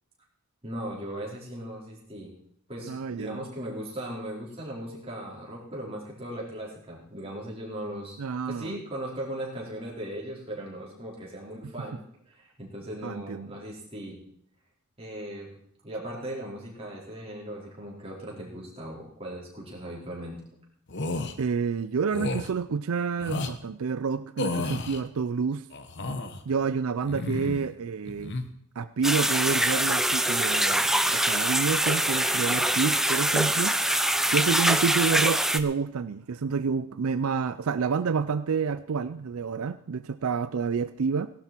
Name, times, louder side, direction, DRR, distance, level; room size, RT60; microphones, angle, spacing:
voice 1, 0.6-2.3 2.7-8.2 8.4-12.0 12.3-14.2 15.0-15.6 15.8-20.4, right 1 dB, 25° right, -4 dB, 4.6 m, -38 dB
voice 2, 2.9-3.4 8.2-8.8 13.0-13.5 21.4-25.7 26.5-28.4 28.8-30.9 31.1-33.8 34.3-41.3, right 5 dB, 75° right, 13 dB, 0.4 m, -28 dB
sound 1, 20.9-21.3 22.1-22.5 23.2-23.5 24.4-25.0 25.7-26.4 27.0-27.7 28.0-28.4, left 2 dB, 50° left, 1.1 m, -32 dB
sound 2, 29.0-35.6, right 1 dB, ahead, 0.5 m, -24 dB
17.5 x 11.5 x 4.5 m, 0.65 s
head